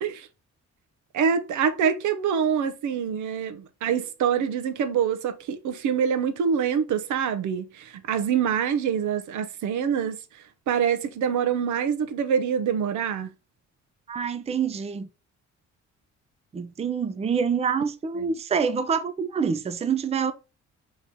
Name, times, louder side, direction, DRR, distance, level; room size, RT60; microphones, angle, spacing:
voice 1, 1.1-10.2 10.7-13.3, right 7 dB, 80° right, 0.7 m, -25 dB
voice 2, 14.1-15.1 16.5-20.3, right 6 dB, 20° right, 0.4 m, -26 dB
4.0 x 3.0 x 3.6 m
cardioid pair, 90°, 30 cm